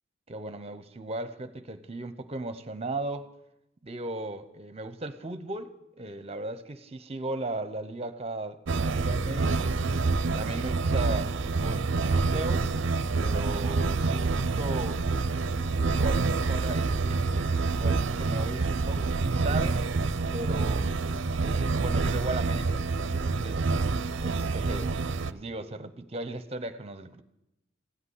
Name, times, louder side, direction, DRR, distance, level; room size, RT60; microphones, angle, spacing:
voice 1, 0.3-3.3 3.8-9.8 10.3-12.7 13.2-17.2 17.8-19.8 20.3-20.9 21.4-23.7 24.2-24.9 25.3-27.2, right 2 dB, 30° right, 0.9 m, -37 dB
sound 1, 8.7-25.3, right 3 dB, 60° right, 0.6 m, -27 dB
16.0 x 8.1 x 9.8 m
head